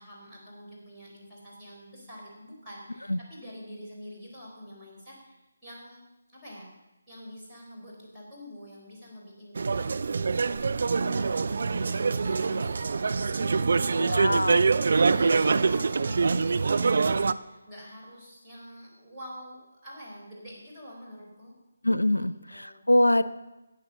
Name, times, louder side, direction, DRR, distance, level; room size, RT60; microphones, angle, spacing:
voice 1, 0.0-6.7 7.1-10.7 11.0-21.6 22.1-22.8, equal, 10° right, -8 dB, 4.2 m, -46 dB
sound 1, 9.5-17.3, right 4 dB, 50° right, 0.4 m, -25 dB
voice 2, 14.0-14.6 21.8-23.2, left 1 dB, 85° left, 15 dB, 0.5 m, -24 dB
11.0 x 8.6 x 6.9 m, 1.0 s
figure-of-eight pair, 150°, 0 cm